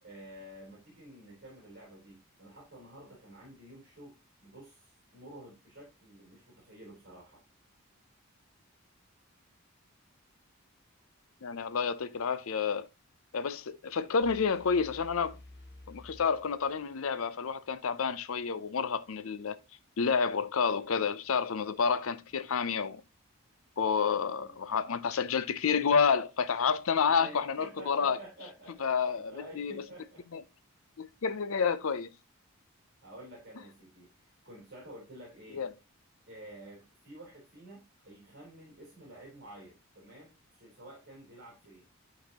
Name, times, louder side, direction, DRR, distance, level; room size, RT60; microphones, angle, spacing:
voice 1, 0.0-7.4 24.4-24.6 27.0-30.4 33.0-35.7 36.3-41.9, right 1 dB, 50° right, 3.5 m, -50 dB
voice 2, 11.4-12.9 13.3-15.4 15.9-19.6 20.0-23.0 23.8-28.2 28.8-29.8 30.3-30.4 31.0-32.1 35.5-35.7, left 6 dB, 70° left, 0.5 m, -29 dB
sound 1, 14.2-17.1, left 1 dB, 50° left, 1.3 m, -52 dB
10.0 x 4.0 x 2.9 m
head